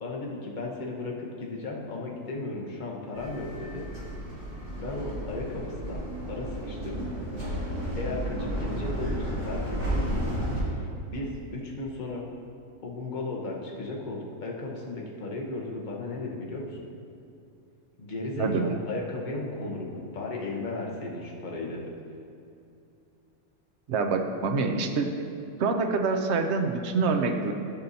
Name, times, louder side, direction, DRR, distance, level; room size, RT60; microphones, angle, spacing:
voice 1, 0.0-3.8 4.8-6.0 6.3-7.1 8.0-10.3 10.7-12.3 12.8-16.8 18.0-21.9, left 2 dB, 35° left, -2 dB, 1.1 m, -35 dB
sound 1, 3.1-10.6, equal, 35° right, 2.2 m, -32 dB
voice 2, 18.4-18.7 23.9-25.1 25.6-27.5, right 4 dB, 60° right, 5 dB, 0.7 m, -26 dB
12.5 x 5.5 x 2.7 m, 2.7 s
omnidirectional pair, 1.6 m